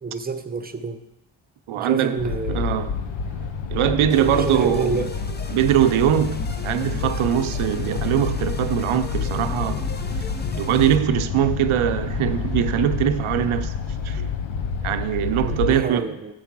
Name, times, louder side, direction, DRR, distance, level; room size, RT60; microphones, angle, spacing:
voice 1, 0.0-1.0 1.8-2.9 4.2-5.1 15.4-16.3, right 4 dB, 20° right, 0.7 m, -28 dB
voice 2, 1.7-2.2 2.5-3.0 3.3-3.4 3.7-5.1 5.5-9.9 10.6-13.7 14.0-14.3 14.8-16.2, right 10 dB, 85° right, 0.6 m, -22 dB
sound 1, 2.2-15.7, left 5 dB, 70° left, 0.9 m, -28 dB
sound 2, 4.1-11.0, left 3 dB, 20° left, 0.7 m, -39 dB
7.5 x 4.5 x 5.9 m
cardioid pair, 55°, 48 cm